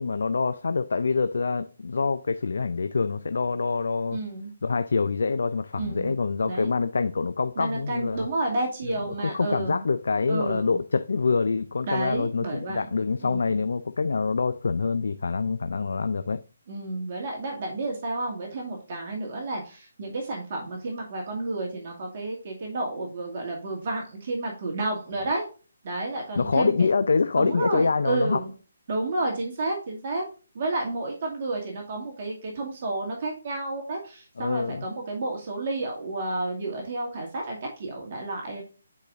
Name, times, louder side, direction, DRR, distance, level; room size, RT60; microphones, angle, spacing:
voice 1, 0.0-4.2 4.6-8.3 9.3-16.4 26.4-28.4 34.4-34.8, left 4 dB, 70° left, 0.5 m, -25 dB
voice 2, 4.1-4.5 5.8-6.1 6.4-6.7 7.6-9.9 10.3-10.8 11.9-12.8 13.2-13.6 16.7-25.5 25.8-26.9 27.4-28.5 28.9-30.2 30.5-38.6, right 2 dB, 45° right, 2.3 m, -31 dB
9.3 x 4.8 x 2.5 m
hypercardioid pair, 155°, 0 cm